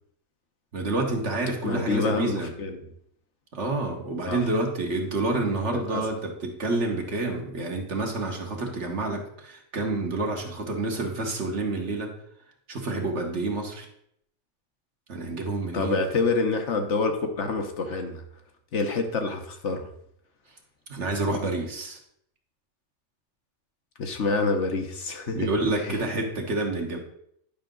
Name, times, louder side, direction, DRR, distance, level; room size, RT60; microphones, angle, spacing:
voice 1, 0.7-2.5 3.5-12.1 12.7-13.9 15.1-16.0 20.9-22.0 25.3-27.0, right 2 dB, 60° right, 2 dB, 1.7 m, -28 dB
voice 2, 1.6-2.8 4.3-4.4 5.7-6.1 15.7-18.2 18.7-19.9 24.0-25.5 25.8-26.0, left 3 dB, 65° left, 5 dB, 1.3 m, -27 dB
10.5 x 5.8 x 3.8 m, 0.71 s
omnidirectional pair, 1.3 m